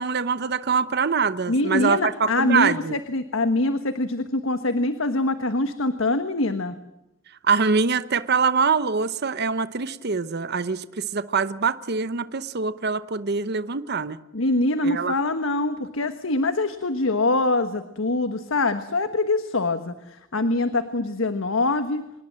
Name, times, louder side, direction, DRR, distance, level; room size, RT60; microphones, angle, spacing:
voice 1, 0.0-3.0 7.4-14.2 14.8-15.1, right 5 dB, 55° right, 13 dB, 0.9 m, -24 dB
voice 2, 1.5-6.8 14.3-22.0, left 2 dB, 85° left, 10 dB, 1.4 m, -24 dB
26.0 x 20.5 x 7.6 m, 0.91 s
head